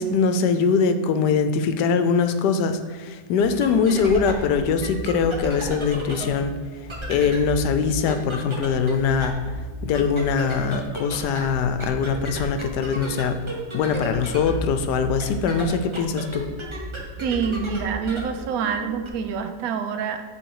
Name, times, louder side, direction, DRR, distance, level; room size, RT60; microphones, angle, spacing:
voice 1, 0.0-6.5 7.1-9.5 9.8-13.4 13.7-16.4, left 5 dB, 80° left, 9 dB, 1.2 m, -22 dB
sound 1, 3.4-19.1, equal, 20° right, 0.9 m, -34 dB
voice 2, 17.2-20.2, right 6 dB, 70° right, 7 dB, 1.0 m, -26 dB
9.1 x 3.8 x 4.7 m, 1.5 s
omnidirectional pair, 1.8 m